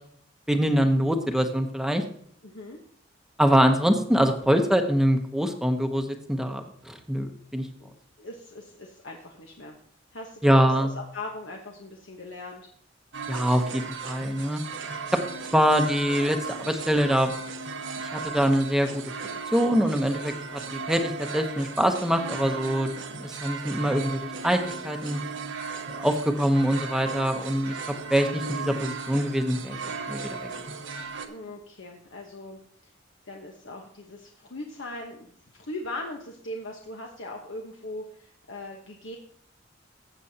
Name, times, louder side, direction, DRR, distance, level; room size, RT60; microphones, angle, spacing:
voice 1, 0.5-2.0 3.4-7.7 10.4-10.9 13.3-14.6 15.1-15.2 15.5-17.3 18.1-19.0 19.5-22.9 23.2-25.2 25.9-27.7 28.1-29.8 30.1-30.4, equal, 5° right, 5 dB, 0.8 m, -24 dB
voice 2, 2.4-2.8 7.8-7.9 8.2-9.8 10.1-12.7 31.3-32.9 33.3-39.2, left 2 dB, 75° left, 1 dB, 1.1 m, -39 dB
sound 1, 13.1-31.3, right 4 dB, 75° right, 1.0 m, -36 dB
15.0 x 7.7 x 2.8 m, 0.63 s
head